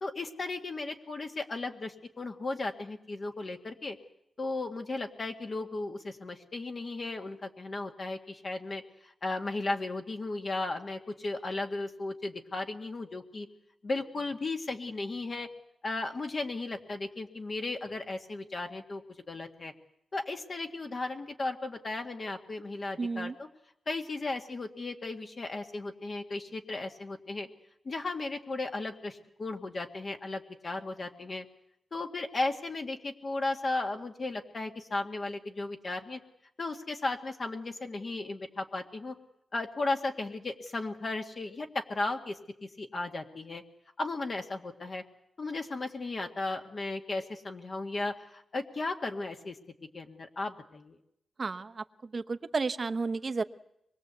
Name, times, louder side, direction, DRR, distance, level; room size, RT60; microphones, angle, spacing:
voice 1, 0.0-4.0 4.4-13.5 13.8-15.5 15.8-19.7 20.1-23.5 23.9-27.5 27.9-31.5 31.9-36.2 36.6-39.2 39.5-43.6 44.0-45.0 45.4-49.6 49.9-51.0, left 2 dB, 40° left, 4 dB, 1.9 m, -35 dB
voice 2, 23.0-23.3 51.4-51.8 52.1-53.4, right 4 dB, 35° right, 9 dB, 1.0 m, -32 dB
25.0 x 21.5 x 8.2 m, 0.78 s
wide cardioid pair, 135°, 0 cm